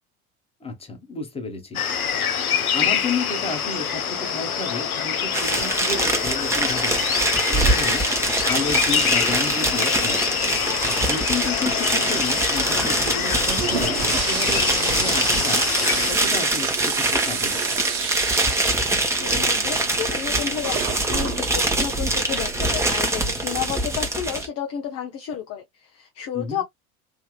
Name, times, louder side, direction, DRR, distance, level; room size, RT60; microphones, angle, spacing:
voice 1, 0.6-1.8 2.7-7.2 7.5-10.4 11.1-15.6 16.1-17.7 26.3-26.6, left 4 dB, 15° left, 1.2 m, -32 dB
sound 1, 1.7-16.1, left 7 dB, 75° left, 0.8 m, -25 dB
sound 2, 5.3-24.5, right 2 dB, 5° right, 1.0 m, -24 dB
Toilet flush, 13.3-22.7, right 8 dB, 55° right, 1.0 m, -31 dB
voice 2, 19.2-26.6, left 9 dB, 35° left, 0.7 m, -31 dB
3.4 x 2.6 x 2.3 m
figure-of-eight pair, 75°, 43 cm